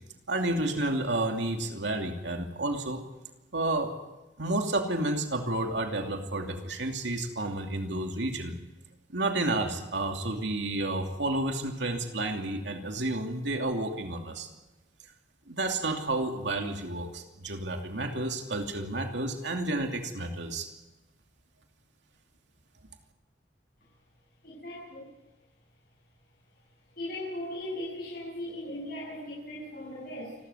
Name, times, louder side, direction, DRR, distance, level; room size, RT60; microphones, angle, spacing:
voice 1, 0.3-3.0 3.5-3.9 4.4-8.5 9.1-14.5 15.5-20.7, right 2 dB, 80° right, 3 dB, 2.7 m, -31 dB
voice 2, 24.4-25.1 27.0-30.4, left 1 dB, 55° left, -7 dB, 8.0 m, -38 dB
28.5 x 13.5 x 9.7 m, 1.1 s
head